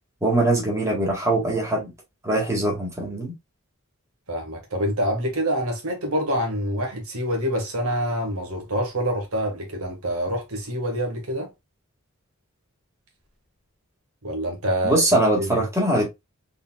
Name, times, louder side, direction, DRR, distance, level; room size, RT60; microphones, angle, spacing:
voice 1, 0.2-1.9 2.2-3.3 14.8-16.1, right 1 dB, 15° right, 1.7 m, -22 dB
voice 2, 4.3-11.5 14.2-15.0 15.4-15.6, equal, 90° right, 1.6 m, -26 dB
4.0 x 3.9 x 2.2 m
head